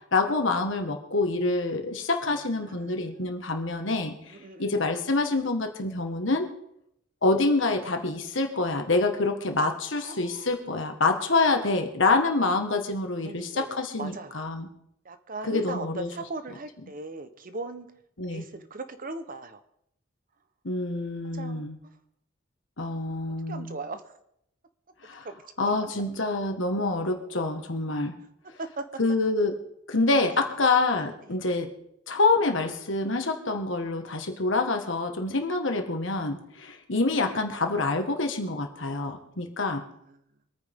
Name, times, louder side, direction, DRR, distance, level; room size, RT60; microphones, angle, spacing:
voice 1, 0.1-4.2 4.6-6.5 7.2-14.7 15.5-16.1 18.2-18.4 20.6-21.8 22.8-23.8 25.0-25.3 25.6-28.1 29.0-29.6 29.9-31.7 32.1-39.8, left 3 dB, 65° left, 5 dB, 1.7 m, -26 dB
voice 2, 2.2-3.2 4.3-5.1 10.0-10.5 13.2-14.4 15.0-17.9 18.3-19.6 21.3-21.9 23.5-24.1 25.2-25.7 28.6-28.8 30.3-30.4 31.2-31.3 40.1-40.2, right 3 dB, 45° right, 10 dB, 1.0 m, -40 dB
24.5 x 9.4 x 3.7 m, 0.77 s
head